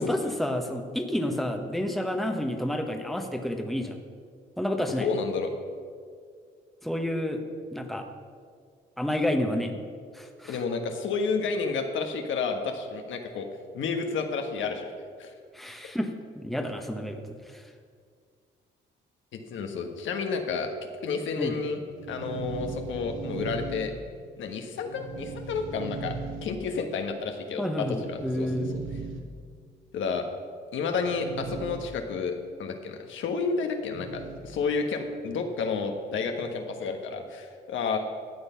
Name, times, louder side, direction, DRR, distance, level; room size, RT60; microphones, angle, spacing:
voice 1, 0.0-4.0 4.6-5.1 6.8-7.4 7.7-8.1 9.0-9.8 10.1-10.6 15.5-17.7 21.4-21.6 27.6-28.8, left 1 dB, ahead, 4 dB, 1.2 m, -30 dB
voice 2, 5.0-5.5 10.5-13.5 13.7-14.9 15.2-15.3 19.3-20.7 21.0-21.8 22.1-23.9 24.4-26.2 26.4-28.5 29.9-30.3 30.7-38.0, left 5 dB, 75° left, 4 dB, 1.4 m, -30 dB
sound 1, 21.7-24.3 24.8-26.9 27.8-29.6 30.8-31.8 32.1-32.2 33.8-34.6, right 4 dB, 85° right, 1.5 m, -38 dB
13.0 x 8.1 x 5.7 m, 2.1 s
cardioid pair, 90°, 20 cm